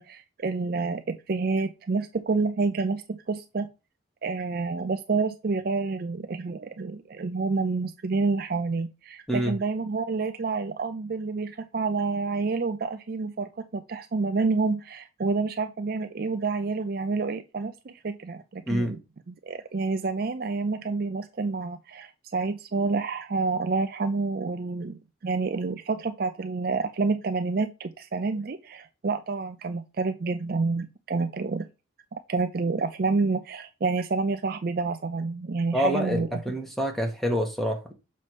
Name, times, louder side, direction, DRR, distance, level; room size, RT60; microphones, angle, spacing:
voice 1, 0.0-3.7 4.2-19.0 19.3-31.7 32.1-36.4, right 4 dB, 50° right, 0.5 m, -28 dB
voice 2, 18.7-19.0 35.7-37.9, equal, ahead, 1.2 m, -27 dB
6.8 x 3.2 x 5.4 m
head